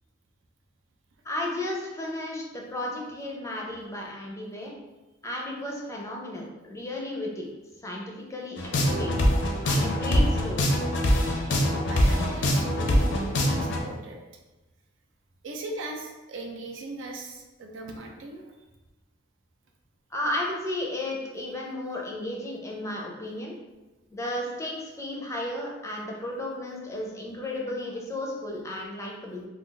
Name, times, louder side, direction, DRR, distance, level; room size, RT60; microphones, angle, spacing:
voice 1, 1.2-4.7 5.2-7.5 7.8-8.6 8.8-9.1 9.6-10.7 20.1-23.5 24.1-29.5, left 1 dB, 15° left, -2 dB, 0.4 m, -33 dB
sound 1, 8.6-13.8, left 1 dB, 65° left, 0.5 m, -23 dB
voice 2, 11.5-14.2 15.4-18.6 27.5-27.6, right 2 dB, 80° right, 1 dB, 0.5 m, -39 dB
2.3 x 2.3 x 3.8 m, 1.1 s
head